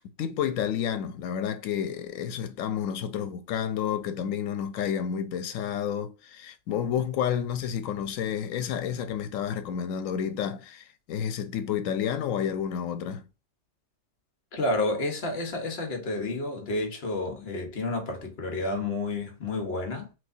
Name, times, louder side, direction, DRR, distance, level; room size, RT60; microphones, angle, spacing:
voice 1, 0.2-13.2, left 9 dB, 90° left, 1.0 m, -30 dB
voice 2, 14.5-20.1, left 2 dB, 55° left, 1.1 m, -30 dB
3.3 x 3.1 x 2.5 m
omnidirectional pair, 1.3 m